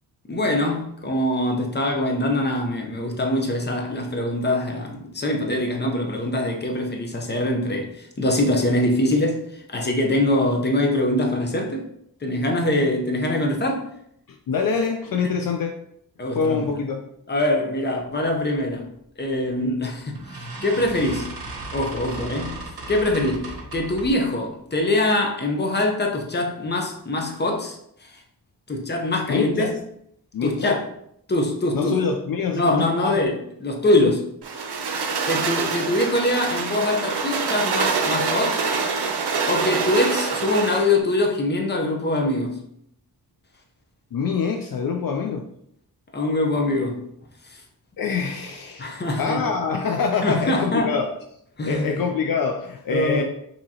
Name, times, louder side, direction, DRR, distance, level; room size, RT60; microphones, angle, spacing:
voice 1, 0.3-11.8 12.2-13.9 15.3-15.4 16.2-16.6 17.3-18.9 19.2-21.3 21.7-22.6 22.9-28.2 28.7-29.7 30.4-30.8 31.3-31.9 32.5-34.2 35.3-38.6 39.5-42.6 46.1-47.0 48.8-49.4 50.2-51.0 51.6-51.9 52.9-53.2, left 1 dB, 25° left, 0.8 m, -23 dB
voice 2, 14.5-15.7 16.3-17.1 29.3-29.7 30.3-30.8 31.7-33.2 44.1-45.5 48.0-51.1 51.7-53.2, left 5 dB, 60° left, 0.5 m, -25 dB
sound 1, 19.4-19.7 20.2-24.2, right 2 dB, 65° right, 1.4 m, -36 dB
sound 2, 34.4-40.9, right 5 dB, 90° right, 0.8 m, -25 dB
6.0 x 2.9 x 2.8 m
wide cardioid pair, 125°, 39 cm